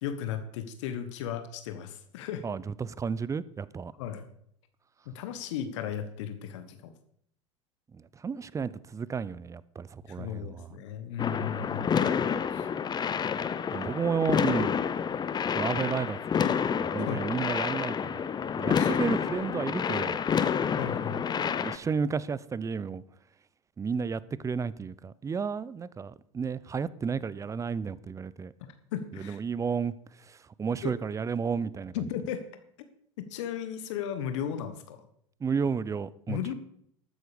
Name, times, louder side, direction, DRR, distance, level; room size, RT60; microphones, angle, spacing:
voice 1, 0.0-2.4 4.0-4.2 5.0-6.9 10.1-12.2 12.5-12.7 17.0-17.2 18.7-19.0 20.7-21.2 28.6-29.4 30.8-30.9 31.9-32.4 33.2-35.0 36.3-36.5, left 9 dB, 70° left, 1.4 m, -35 dB
voice 2, 2.4-3.9 7.9-10.7 13.7-14.8 15.5-16.5 16.8-18.2 18.6-20.2 21.6-23.0 23.8-28.5 29.1-32.0 35.4-36.5, right 6 dB, 20° right, 0.6 m, -32 dB
sound 1, 11.2-21.8, left 7 dB, 25° left, 0.8 m, -29 dB
12.5 x 9.2 x 5.2 m
hypercardioid pair, 90°, 16 cm